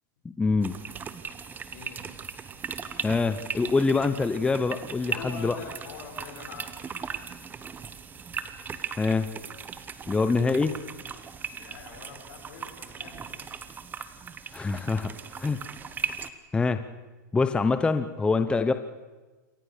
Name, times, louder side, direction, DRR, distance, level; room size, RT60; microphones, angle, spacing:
voice 1, 0.4-0.8 3.0-5.6 9.0-9.3 10.1-10.7 14.5-15.6 16.5-16.8 17.3-18.7, left 4 dB, 10° left, 10 dB, 0.8 m, -25 dB
sound 1, 0.6-16.3, right 6 dB, 15° right, 1.2 m, -38 dB
voice 2, 1.7-2.1 5.1-6.7 11.5-13.2, left 5 dB, 70° left, 2 dB, 7.0 m, -44 dB
27.5 x 15.0 x 6.7 m, 1.2 s
hypercardioid pair, 135°, 10 cm